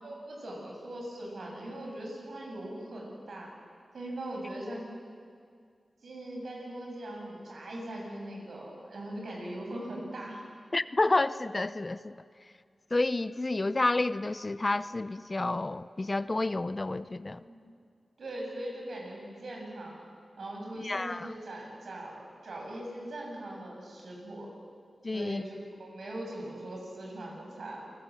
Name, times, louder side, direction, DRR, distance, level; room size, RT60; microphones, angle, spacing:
voice 1, 0.0-3.5 3.9-4.9 6.0-10.5 17.4-17.6 18.2-19.9 20.4-24.5 25.1-27.9, right 1 dB, 75° right, -1 dB, 7.5 m, -40 dB
voice 2, 10.7-12.2 12.9-17.4 20.8-21.3 25.0-25.4, left 2 dB, 30° left, 14 dB, 0.6 m, -30 dB
29.0 x 19.5 x 7.7 m, 2.2 s
wide cardioid pair, 90°, 0 cm